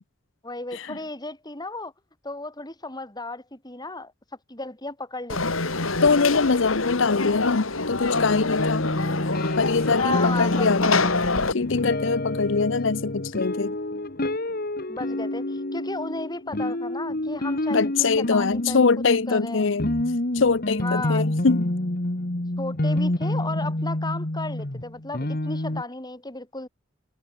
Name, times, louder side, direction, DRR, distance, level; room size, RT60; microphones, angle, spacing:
voice 1, 0.4-1.9 2.2-4.1 4.5-5.7 10.0-11.1 14.9-18.9 19.3-19.7 20.8-21.3 22.6-26.7, left 2 dB, 20° left, 4.6 m, -34 dB
Conversation / Crowd, 5.3-11.5, left 3 dB, 85° left, 4.1 m, -26 dB
voice 2, 6.0-8.9 9.6-11.0 11.5-13.7 17.7-19.9 20.3-21.7, left 4 dB, 65° left, 0.7 m, -23 dB
sound 1, 8.1-25.8, left 1 dB, 45° left, 1.8 m, -28 dB
head